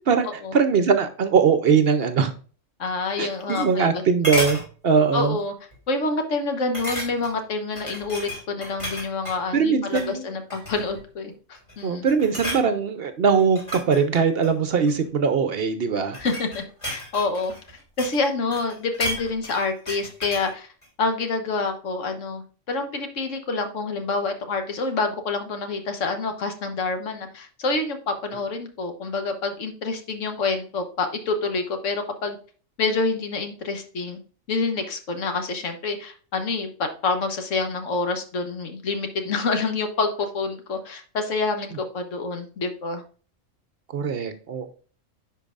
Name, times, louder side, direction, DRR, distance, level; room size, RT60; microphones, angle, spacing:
voice 1, 0.0-2.3 3.2-5.4 9.5-10.2 11.8-16.2 43.9-44.7, right 6 dB, 60° right, 10 dB, 0.7 m, -21 dB
voice 2, 2.8-4.0 5.1-5.5 5.9-12.1 16.2-20.7 21.0-32.4 32.8-34.2 34.5-43.0, left 3 dB, 75° left, 6 dB, 1.4 m, -27 dB
sound 1, 3.1-4.0 4.2-4.7 5.2-5.4 5.7-5.8 6.7-7.4 7.8-9.4 9.8-10.1 10.5-11.0 11.5-11.8 12.1-12.7 13.4-15.0 15.8-18.2 18.5-20.5 20.8-20.9, equal, 25° left, 2.8 m, -32 dB
10.5 x 4.6 x 2.4 m, 0.39 s
omnidirectional pair, 1.3 m